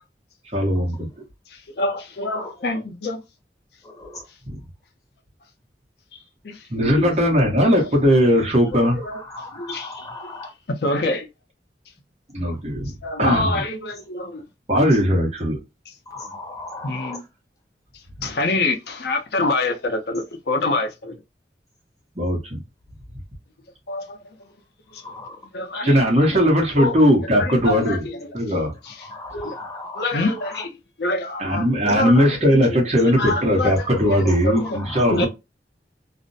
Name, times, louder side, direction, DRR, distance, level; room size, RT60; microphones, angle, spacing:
voice 1, 0.5-1.1 4.4-4.6 6.7-9.0 12.3-12.9 13.2-13.6 14.7-15.6 22.2-22.6 25.8-28.1 28.3-28.7 31.4-35.3, equal, 35° right, 1.0 m, -19 dB
voice 2, 1.5-3.2 6.4-7.1 8.7-9.2 9.5-10.3 10.8-11.3 13.0-14.4 16.8-17.2 18.2-21.2 23.9-24.2 24.9-25.0 25.5-26.3 26.8-27.0 27.3-28.2 28.8-28.9 29.3-29.6 30.0-33.8 34.2-34.8 35.1-35.3, left 2 dB, 65° left, 0.6 m, -26 dB
voice 3, 9.4-10.5 16.1-17.2 29.2-30.0, left 2 dB, 20° left, 0.5 m, -36 dB
2.5 x 2.1 x 2.5 m
head